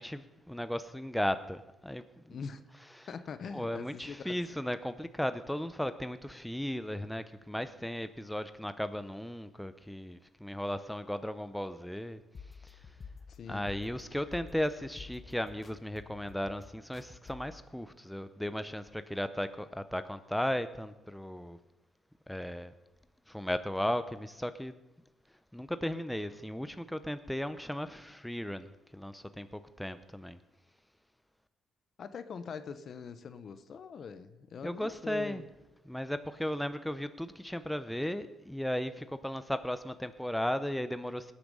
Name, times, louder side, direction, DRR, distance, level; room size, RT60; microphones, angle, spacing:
voice 1, 0.0-2.4 3.0-3.1 3.5-12.2 12.6-12.8 13.5-21.6 22.3-22.7 23.3-24.7 25.5-30.4 34.6-35.4 35.9-41.3, left 1 dB, 5° left, 11 dB, 0.7 m, -36 dB
voice 2, 2.3-2.6 3.1-4.3 13.3-13.7 27.2-27.3 32.0-35.5, left 6 dB, 55° left, 12 dB, 1.0 m, -43 dB
sound 1, 12.3-17.6, left 5 dB, 35° left, 1.2 m, -50 dB
19.0 x 8.5 x 5.4 m, 1.0 s
cardioid pair, 90°, 0 cm